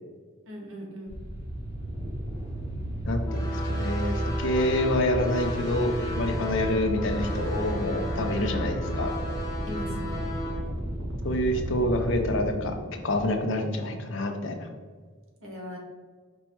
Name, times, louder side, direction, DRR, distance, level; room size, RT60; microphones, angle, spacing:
voice 1, 0.4-1.2 9.6-10.3 15.4-15.8, equal, 80° right, 0 dB, 1.2 m, -39 dB
sound 1, 1.1-12.4, equal, 20° right, 1.2 m, -33 dB
voice 2, 3.0-9.2 11.2-12.7 13.0-14.6, left 1 dB, 60° left, 5 dB, 0.6 m, -27 dB
sound 2, 3.2-10.6, equal, 15° left, 0.8 m, -35 dB
sound 3, 6.2-13.2, equal, 60° right, 0.8 m, -42 dB
5.2 x 2.3 x 4.5 m, 1.5 s
head